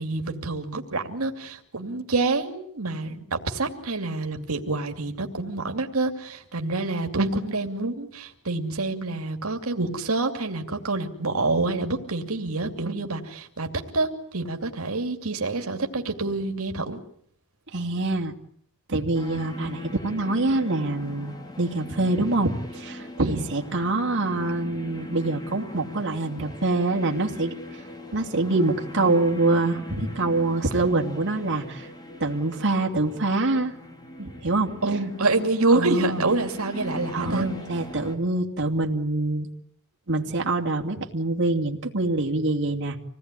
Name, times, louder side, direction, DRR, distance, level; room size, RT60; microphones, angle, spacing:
voice 1, 0.0-13.7 13.9-17.0 23.2-23.5 34.8-37.5, right 3 dB, 75° right, 4 dB, 2.7 m, -27 dB
voice 2, 17.7-18.3 18.9-27.8 28.1-31.9 32.2-33.7 34.2-35.0 35.7-36.3 37.1-39.5 40.1-43.0, right 2 dB, 55° right, 1 dB, 2.7 m, -25 dB
sound 1, 19.1-38.2, left 2 dB, 20° left, 3.4 m, -39 dB
26.5 x 18.5 x 9.9 m, 0.67 s
head